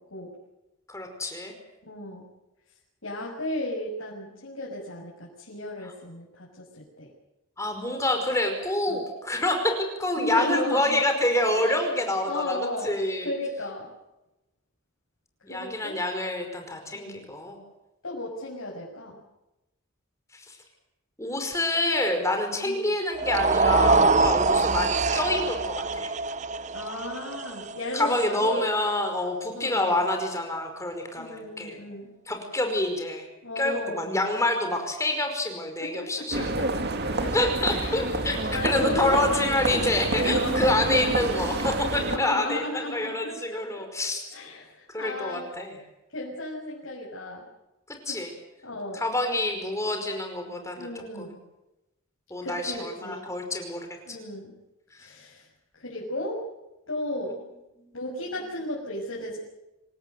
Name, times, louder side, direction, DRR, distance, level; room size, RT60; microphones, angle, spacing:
voice 1, 0.9-1.5 7.6-9.7 10.0-13.3 15.4-17.6 20.3-20.6 21.2-26.1 27.9-31.8 32.3-33.2 33.6-36.7 37.3-44.2 44.9-45.8 48.1-48.3 48.9-51.3 52.3-53.9 57.8-57.9, left 1 dB, 15° left, 4 dB, 5.2 m, -27 dB
voice 2, 1.8-2.2 3.0-7.1 8.9-9.0 10.2-11.0 11.6-12.0 12.2-13.9 15.4-16.0 16.9-17.2 18.0-19.2 22.6-22.8 26.7-28.6 29.5-30.0 31.1-32.1 33.4-34.0 35.8-39.8 40.3-40.7 42.1-43.8 44.3-45.4 46.1-47.4 48.1-48.2 48.6-49.0 50.8-51.4 52.4-53.3 54.0-54.5 55.0-55.5 55.7-56.4 56.9-57.3 57.9-59.4, left 1 dB, 80° left, -3 dB, 6.3 m, -35 dB
sound 1, 23.1-29.4, right 4 dB, 35° right, 0.8 m, -25 dB
sound 2, 36.3-42.2, right 2 dB, 50° right, 2.3 m, -28 dB
26.5 x 18.5 x 8.0 m, 0.95 s
head